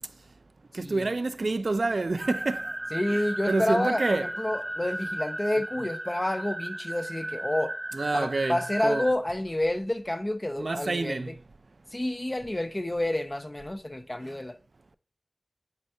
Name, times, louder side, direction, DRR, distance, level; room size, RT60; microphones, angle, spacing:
voice 1, 0.7-2.7 3.1-4.3 7.9-9.0 10.6-11.3, right 3 dB, 60° right, 0.4 m, -28 dB
sound 1, 2.2-9.1, right 1 dB, 20° right, 0.6 m, -35 dB
voice 2, 2.9-7.8 8.1-11.3 11.9-14.6, left 1 dB, 25° left, 0.4 m, -29 dB
9.5 x 4.4 x 2.7 m
wide cardioid pair, 70°, 0 cm